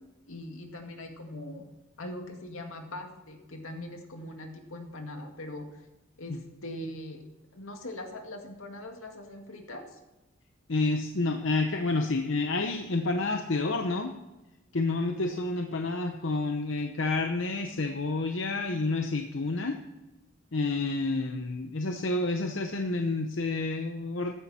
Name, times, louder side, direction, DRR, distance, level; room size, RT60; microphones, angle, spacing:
voice 1, 0.3-1.6 2.0-5.7 6.2-7.2 7.5-10.0, left 1 dB, 85° left, 3 dB, 2.1 m, -41 dB
voice 2, 10.7-14.1 14.7-19.8 20.5-24.3, left 3 dB, 65° left, 5 dB, 0.8 m, -29 dB
14.0 x 11.5 x 4.3 m, 1.0 s
head